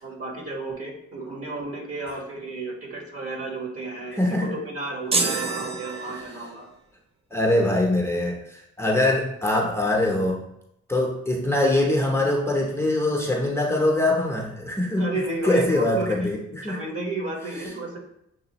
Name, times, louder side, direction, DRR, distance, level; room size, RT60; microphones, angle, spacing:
voice 1, 0.0-6.7 15.0-16.2 16.6-18.0, right 2 dB, 50° right, 0 dB, 1.4 m, -32 dB
voice 2, 4.1-4.5 7.3-10.5 10.9-15.1 15.4-16.8, left 1 dB, 10° left, -1 dB, 0.7 m, -23 dB
sound 1, 5.1-6.7, right 3 dB, 20° right, 0.4 m, -27 dB
6.8 x 2.4 x 2.9 m, 0.79 s
cardioid pair, 90°, 30 cm